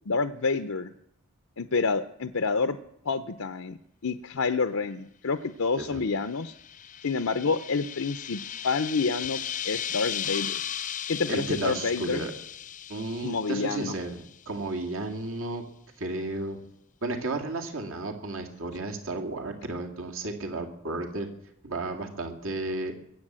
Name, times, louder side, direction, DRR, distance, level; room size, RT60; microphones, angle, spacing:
voice 1, 0.1-0.9 1.6-2.8 3.0-3.8 4.0-6.5 7.0-10.6 11.1-12.2 13.2-13.9, left 4 dB, 75° left, 9 dB, 0.7 m, -28 dB
sound 1, 6.2-14.5, left 10 dB, 35° left, 0.6 m, -36 dB
voice 2, 11.3-12.3 12.9-15.6 16.0-16.6 17.0-21.3 21.6-22.9, right 2 dB, 70° right, 3 dB, 2.4 m, -33 dB
22.0 x 8.3 x 7.5 m, 0.75 s
head